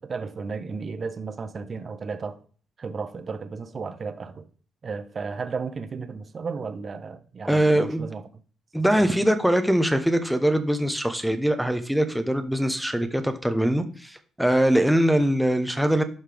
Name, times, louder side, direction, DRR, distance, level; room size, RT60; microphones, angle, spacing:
voice 1, 0.0-2.4 2.8-4.5 4.8-8.3 9.0-9.1, right 5 dB, 40° right, 1.0 m, -34 dB
voice 2, 7.5-8.1 8.7-16.0, right 1 dB, ahead, 1.0 m, -22 dB
11.5 x 5.7 x 3.5 m
cardioid pair, 90°, 0 cm